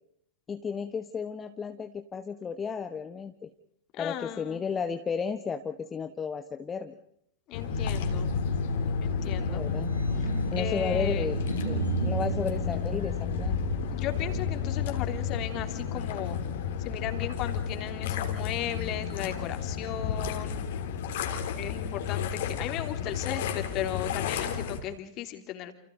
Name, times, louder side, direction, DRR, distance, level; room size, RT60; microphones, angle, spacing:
voice 1, 0.5-3.5 4.0-7.0 9.5-9.9 10.5-13.6, left 6 dB, 20° left, 7 dB, 1.3 m, -33 dB
voice 2, 4.0-4.6 7.5-8.3 9.0-9.7 10.6-11.3 13.9-16.4 16.8-20.6 21.6-25.7, left 11 dB, 40° left, 7 dB, 3.2 m, -36 dB
sound 1, 7.5-24.8, left 7 dB, 55° left, 3.3 m, -32 dB
sound 2, 7.7-15.8, equal, 90° right, 5.3 m, -32 dB
29.5 x 29.5 x 3.9 m, 0.70 s
figure-of-eight pair, 90°, 0 cm